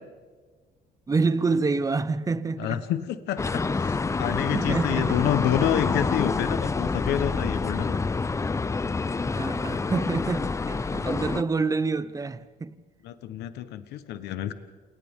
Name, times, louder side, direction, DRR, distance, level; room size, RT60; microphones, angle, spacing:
voice 1, 1.1-2.8 4.5-5.3 9.2-12.8, right 4 dB, 20° right, 0.9 m, -27 dB
voice 2, 2.6-8.1 13.0-14.5, left 11 dB, 80° left, 1.1 m, -28 dB
sound 1, 3.4-11.4, left 4 dB, 15° left, 0.6 m, -27 dB
29.0 x 28.5 x 3.7 m
cardioid pair, 110°, 17 cm